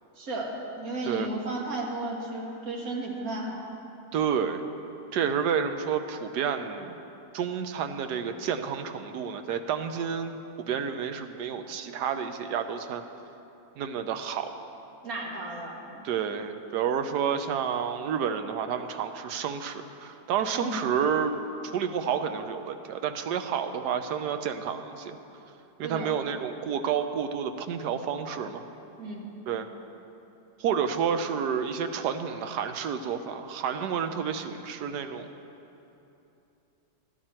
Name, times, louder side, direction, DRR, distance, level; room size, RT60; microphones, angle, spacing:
voice 1, 0.2-0.5 0.8-3.6 15.0-16.0 20.6-20.7 25.8-26.1 29.0-29.2, right 2 dB, 55° right, -2 dB, 2.0 m, -34 dB
voice 2, 4.1-4.6 5.1-7.0 7.3-10.4 10.7-13.0 13.8-14.5 16.0-21.3 21.6-25.2 25.8-28.6 29.5-29.7 30.6-35.3, right 7 dB, 75° right, 8 dB, 1.2 m, -30 dB
12.5 x 11.0 x 4.4 m, 2.9 s
omnidirectional pair, 1.8 m